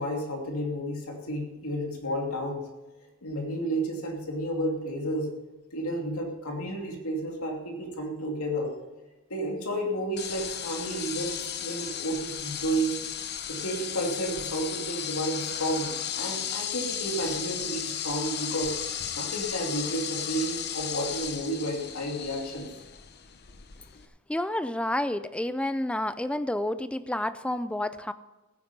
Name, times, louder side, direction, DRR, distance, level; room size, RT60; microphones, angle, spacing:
voice 1, 0.0-2.7 3.2-5.3 5.7-8.7 9.3-13.0 13.5-18.7 19.2-22.7, right 1 dB, 90° left, 1 dB, 2.7 m, -31 dB
sound 1, 10.2-24.1, left 9 dB, 50° left, 0.9 m, -35 dB
voice 2, 24.3-28.1, left 1 dB, 5° left, 13 dB, 0.4 m, -29 dB
15.5 x 9.2 x 5.4 m, 1.1 s
head